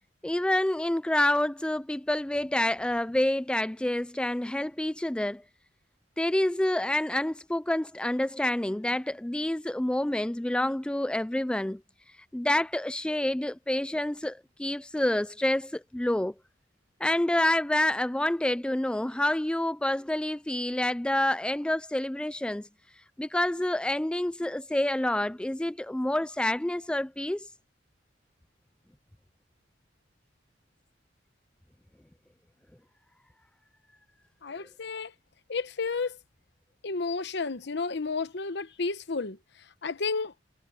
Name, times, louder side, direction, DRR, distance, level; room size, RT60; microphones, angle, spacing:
voice 1, 0.2-5.4 6.2-11.8 12.3-16.3 17.0-22.7 23.2-27.5, left 1 dB, 5° left, 0.3 m, -28 dB
voice 2, 34.4-35.1 35.5-36.2 36.8-39.4 39.8-40.3, left 4 dB, 65° left, 1.0 m, -31 dB
head